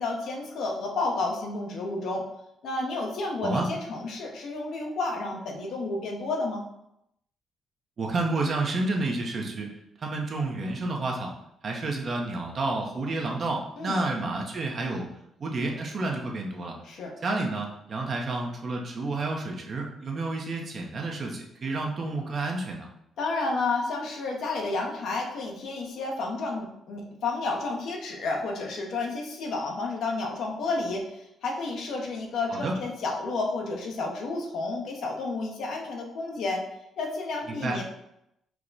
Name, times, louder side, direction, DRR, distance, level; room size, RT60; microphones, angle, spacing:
voice 1, 0.0-2.2 2.6-6.6 13.8-14.0 16.8-17.1 23.2-36.6 37.0-37.8, left 3 dB, 75° left, 0 dB, 0.9 m, -31 dB
voice 2, 8.0-9.7 10.0-11.3 11.6-15.1 15.4-16.8 17.2-22.9 32.5-32.7 37.5-37.8, right 2 dB, 50° right, 0 dB, 0.8 m, -30 dB
4.6 x 2.2 x 3.9 m, 0.81 s
cardioid pair, 90°, 0 cm